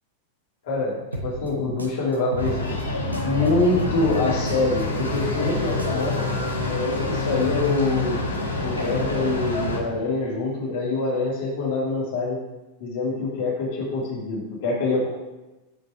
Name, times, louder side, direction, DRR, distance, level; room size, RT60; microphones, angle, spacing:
voice 1, 0.7-2.7 3.2-6.3 6.7-8.2 8.6-12.4 12.8-15.1, left 3 dB, 50° left, -4 dB, 1.8 m, -25 dB
sound 1, 1.1-3.5 3.8-6.2, right 1 dB, 85° right, 0.8 m, -34 dB
sound 2, 2.4-9.8, left 2 dB, 80° left, 1.2 m, -27 dB
8.3 x 5.2 x 4.4 m, 1.1 s
figure-of-eight pair, 90°, 0 cm